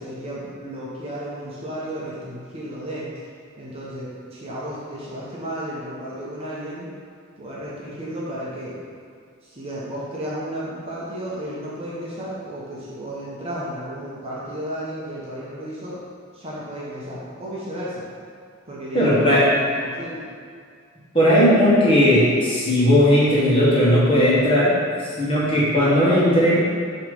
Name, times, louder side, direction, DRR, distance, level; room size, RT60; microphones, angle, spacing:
voice 1, 0.0-3.1 3.6-6.9 7.4-8.8 9.4-16.0 16.3-18.0 18.7-20.3, equal, 25° right, -7 dB, 1.1 m, -33 dB
voice 2, 18.9-19.4 21.1-24.8 25.2-26.6, equal, 25° left, -8 dB, 1.6 m, -17 dB
6.6 x 3.2 x 5.4 m, 2.2 s
head